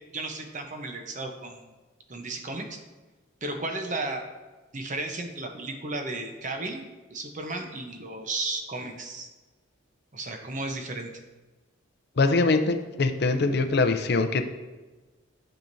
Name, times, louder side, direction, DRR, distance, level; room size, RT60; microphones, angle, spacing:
voice 1, 0.1-1.7 2.1-2.8 3.4-4.2 4.7-6.8 7.1-9.3 10.1-11.1, right 2 dB, 35° right, 4 dB, 0.9 m, -34 dB
voice 2, 12.2-14.4, left 3 dB, 50° left, 6 dB, 0.5 m, -23 dB
12.0 x 5.0 x 2.7 m, 1.2 s
head